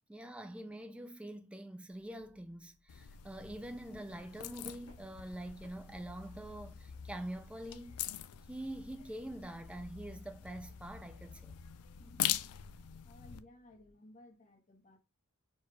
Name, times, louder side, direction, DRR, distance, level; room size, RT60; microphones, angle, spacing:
voice 1, 0.1-8.0 8.5-11.5, right 1 dB, 5° right, 0.3 m, -45 dB
sound 1, 1.9-13.9, left 2 dB, 30° right, 0.7 m, -70 dB
sound 2, 2.9-13.4, left 11 dB, 85° left, 0.4 m, -43 dB
sound 3, 4.2-13.0, left 1 dB, 60° left, 1.8 m, -69 dB
voice 2, 12.0-12.5 13.0-15.0, left 1 dB, 35° left, 0.9 m, -58 dB
4.5 x 2.3 x 4.6 m
head